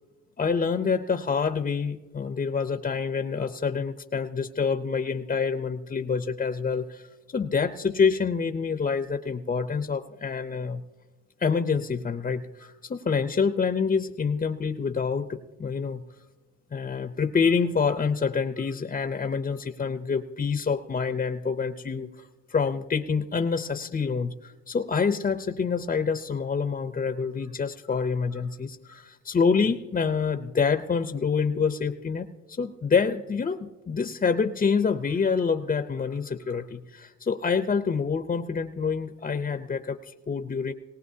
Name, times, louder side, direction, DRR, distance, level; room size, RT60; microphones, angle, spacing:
voice 1, 0.4-7.1 7.3-10.8 11.4-16.0 16.7-32.3 32.6-40.7, left 5 dB, 30° left, 8 dB, 0.6 m, -27 dB
19.5 x 18.0 x 2.8 m, 1.2 s
cardioid pair, 90°, 30 cm